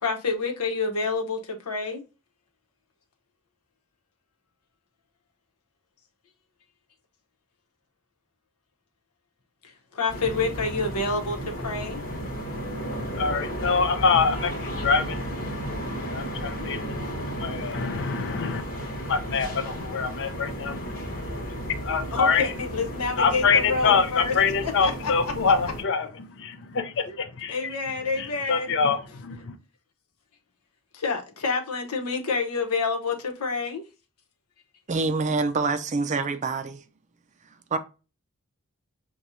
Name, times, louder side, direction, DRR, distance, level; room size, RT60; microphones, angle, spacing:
voice 1, 0.0-2.0 9.6-12.0 22.1-24.3 24.6-25.1 27.1-27.2 27.5-28.7 30.9-33.8, left 4 dB, 90° left, 0.9 m, -28 dB
sound 1, 10.1-25.8, equal, 40° left, 1.2 m, -34 dB
voice 2, 12.8-15.2 16.0-18.6 18.9-21.1 21.7-22.5 23.2-27.5 28.2-29.6, left 5 dB, 55° left, 0.5 m, -25 dB
voice 3, 34.9-36.8 37.7-37.8, right 3 dB, 30° right, 0.4 m, -26 dB
6.1 x 2.3 x 2.7 m
head